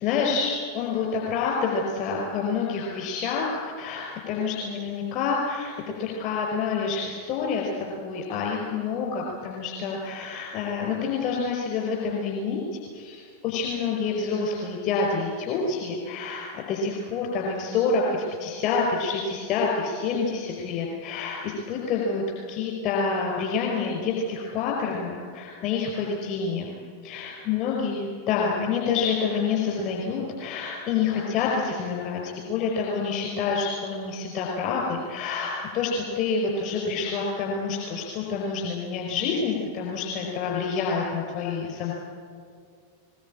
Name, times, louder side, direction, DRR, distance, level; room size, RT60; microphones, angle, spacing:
voice 1, 0.0-5.7 6.0-26.7 27.0-41.9, left 5 dB, 40° left, -1 dB, 5.0 m, -28 dB
21.5 x 21.0 x 8.8 m, 2.2 s
figure-of-eight pair, 90°, 0 cm